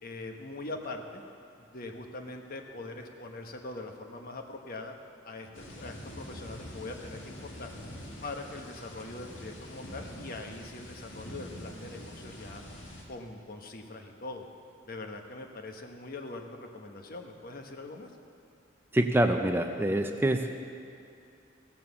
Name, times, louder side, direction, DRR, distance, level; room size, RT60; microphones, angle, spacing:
voice 1, 0.0-1.2 1.6-4.9 5.2-5.5 5.8-7.7 8.2-12.6 13.1-14.5 14.9-18.1, left 2 dB, 50° left, 4 dB, 1.1 m, -42 dB
sound 1, 5.5-13.0, equal, 85° left, 2.0 m, -45 dB
voice 2, 18.9-20.6, right 1 dB, 10° right, 5 dB, 0.5 m, -26 dB
15.5 x 7.4 x 7.1 m, 2.6 s
head